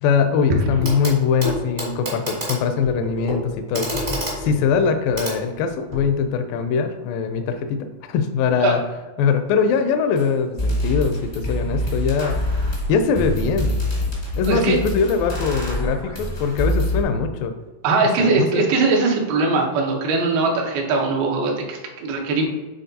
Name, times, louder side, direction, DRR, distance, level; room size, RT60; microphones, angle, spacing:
voice 1, 0.0-8.8 9.2-12.4 12.9-13.8 14.4-17.5 18.2-18.7, left 6 dB, 80° left, 7 dB, 2.2 m, -22 dB
Clock, 0.8-1.1 1.4-6.1 7.3-7.4, equal, 35° right, 0.6 m, -29 dB
sound 1, 10.2-10.3 10.6-17.0, left 1 dB, 40° left, 0.5 m, -25 dB
voice 2, 14.5-14.8 17.8-22.4, right 3 dB, 85° right, 0 dB, 2.9 m, -20 dB
9.0 x 3.9 x 2.7 m, 1.2 s
omnidirectional pair, 4.2 m